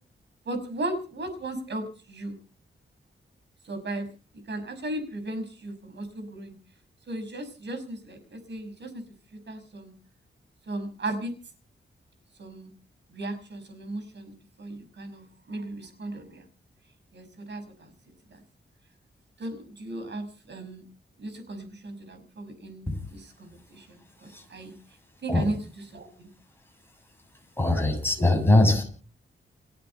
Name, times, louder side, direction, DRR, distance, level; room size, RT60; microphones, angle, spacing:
voice 1, 0.5-2.4 3.6-4.1 4.5-6.6 7.1-9.0 9.3-9.9 10.7-11.3 12.4-12.7 13.1-16.5 17.1-17.9 18.3-18.4 19.4-20.8 21.2-24.7 25.2-26.3, right 1 dB, 60° right, 8 dB, 5.7 m, -36 dB
voice 2, 27.6-28.8, left 2 dB, 10° left, 3 dB, 7.5 m, -21 dB
29.5 x 10.5 x 4.5 m, 0.40 s
wide cardioid pair, 135°, 20 cm